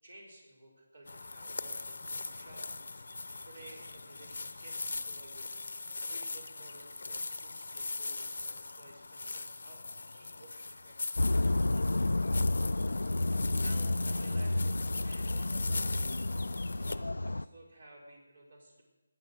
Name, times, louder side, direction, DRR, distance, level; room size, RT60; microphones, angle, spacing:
voice 1, 0.0-5.7 6.1-9.8 10.1-11.7 13.2-16.3 16.7-18.8, right 2 dB, 85° right, -1 dB, 5.6 m, -55 dB
sound 1, 1.1-17.0, left 3 dB, 75° left, 0.8 m, -40 dB
sound 2, 11.2-17.5, left 2 dB, 90° left, 0.4 m, -30 dB
20.5 x 8.4 x 6.6 m, 1.1 s
figure-of-eight pair, 165°, 0 cm